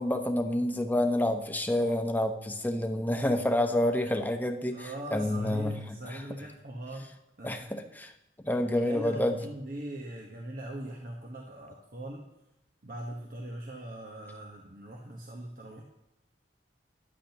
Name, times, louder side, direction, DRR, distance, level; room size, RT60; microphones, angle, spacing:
voice 1, 0.0-4.8 5.1-5.8 7.4-8.1 8.4-9.3, left 1 dB, 10° left, 5 dB, 0.9 m, -28 dB
voice 2, 4.7-7.1 7.4-7.7 8.8-12.2 12.8-15.8, right 1 dB, 55° right, -1 dB, 1.3 m, -41 dB
14.0 x 10.5 x 3.0 m, 0.88 s
head